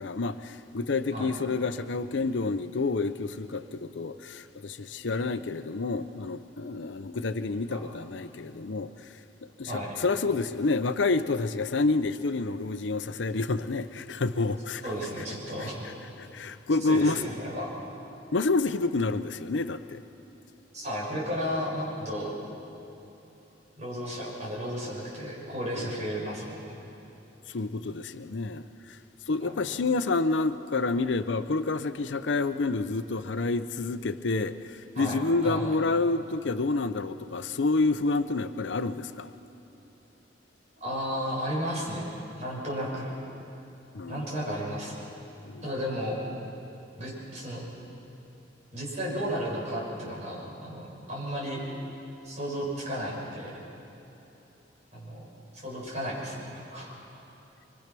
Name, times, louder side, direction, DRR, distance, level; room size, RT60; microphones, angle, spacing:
voice 1, 0.0-9.1 9.6-14.8 15.6-15.9 16.2-17.2 18.3-20.0 27.5-29.0 29.3-39.3 43.9-44.3 45.4-45.6, left 3 dB, 80° left, 11 dB, 0.7 m, -28 dB
voice 2, 9.7-10.0 14.8-15.8 16.8-17.7 20.7-22.3 23.8-26.6 29.4-29.6 34.9-35.6 40.8-42.1 42.4-43.1 44.1-45.1 45.6-46.2 47.0-47.7 48.7-51.6 52.2-53.5 54.9-55.3 55.5-56.9, equal, 40° right, -5 dB, 6.8 m, -33 dB
25.5 x 22.5 x 6.1 m, 3.0 s
head